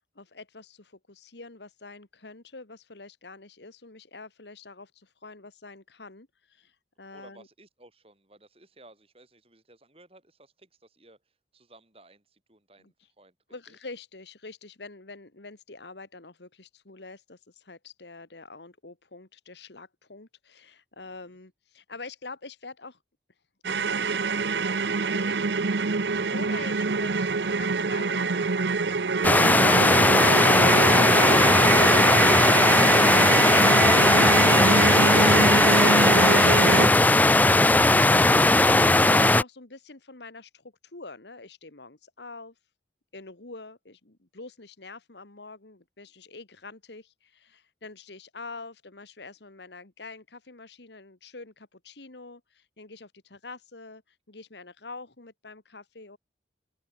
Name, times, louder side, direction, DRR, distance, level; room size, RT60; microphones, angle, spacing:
voice 1, 0.2-7.5 12.8-12.9 13.5-23.0 23.6-25.4 26.2-28.9 33.8-42.5 43.1-56.2, left 3 dB, 75° left, 1.8 m, -45 dB
voice 2, 7.1-13.3 13.7-13.8 21.0-21.4, right 2 dB, 30° right, 7.9 m, -56 dB
sound 1, 23.6-36.9, right 4 dB, 75° right, 0.9 m, -24 dB
sound 2, 29.2-39.4, left 2 dB, 10° left, 0.4 m, -18 dB
open air
head